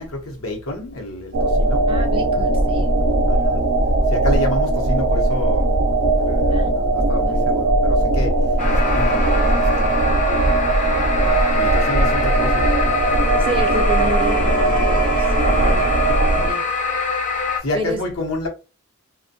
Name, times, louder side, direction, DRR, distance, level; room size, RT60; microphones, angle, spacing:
voice 1, 0.0-1.9 3.3-3.6 4.1-5.7 6.2-10.5 11.2-12.7 15.4-15.8 17.6-18.5, left 1 dB, 75° left, 0.8 m, -29 dB
sound 1, 1.3-16.5, right 2 dB, 85° right, 0.5 m, -18 dB
voice 2, 1.9-2.9 6.5-6.7 7.3-7.4 13.4-15.9 16.3-16.9 17.7-18.0, right 1 dB, 25° right, 0.3 m, -30 dB
sound 2, 8.6-17.6, left 3 dB, 35° left, 0.5 m, -24 dB
2.5 x 2.2 x 2.6 m
head